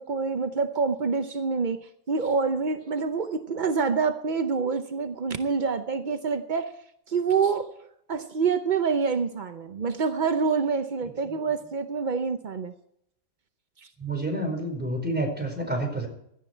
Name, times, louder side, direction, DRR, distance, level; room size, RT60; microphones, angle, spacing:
voice 1, 0.0-1.8 2.1-6.7 7.1-7.7 8.1-12.7, right 5 dB, 60° right, 8 dB, 0.5 m, -26 dB
voice 2, 14.0-16.1, right 1 dB, 5° right, 1 dB, 4.5 m, -29 dB
17.0 x 12.0 x 4.5 m, 0.73 s
omnidirectional pair, 1.9 m